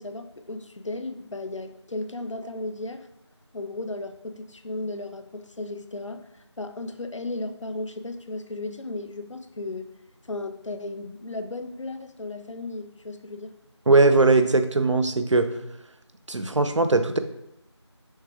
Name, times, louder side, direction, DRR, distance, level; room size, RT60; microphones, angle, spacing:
voice 1, 0.0-3.1 3.5-6.2 6.6-9.9 10.3-13.5, left 2 dB, 90° left, 8 dB, 0.5 m, -35 dB
voice 2, 13.9-15.5 16.3-17.2, right 3 dB, 80° right, 9 dB, 0.5 m, -20 dB
6.3 x 2.3 x 3.5 m, 0.82 s
figure-of-eight pair, 175°, 15 cm